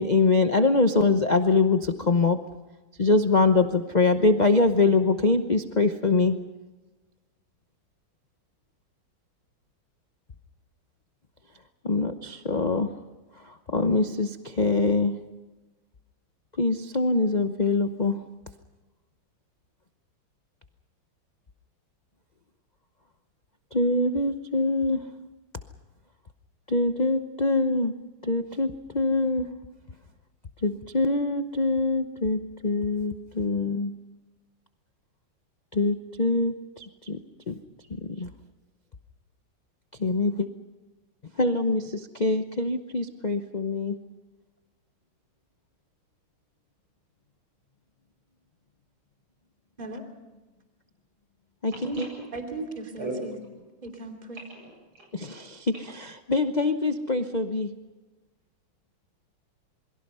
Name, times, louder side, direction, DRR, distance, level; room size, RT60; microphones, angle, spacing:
voice 1, 0.0-2.4 3.0-6.4 11.8-12.9 13.4-15.2 16.6-18.2 23.7-25.0 26.7-27.9 28.2-29.5 30.6-33.9 35.7-37.2 37.5-37.6 38.0-38.3 40.0-40.5 41.4-44.0 51.6-51.7 52.0-52.1 55.1-55.7 56.3-57.7, left 3 dB, 50° left, 8 dB, 0.5 m, -24 dB
voice 2, 51.7-52.2 53.0-53.2 54.5-55.4, right 2 dB, 85° right, 0 dB, 8.9 m, -39 dB
voice 3, 52.3-53.3 53.8-54.4, right 2 dB, 20° right, 4 dB, 2.9 m, -36 dB
27.5 x 22.0 x 5.6 m, 1.2 s
omnidirectional pair, 2.2 m